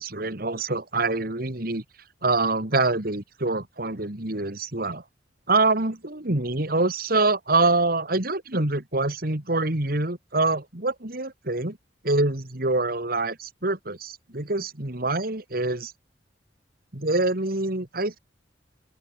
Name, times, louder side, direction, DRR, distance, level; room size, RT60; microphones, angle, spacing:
voice 1, 0.0-1.8 2.2-5.0 5.5-11.8 12.0-15.9 16.9-18.2, right 2 dB, 55° right, 2.6 m, -25 dB
open air
head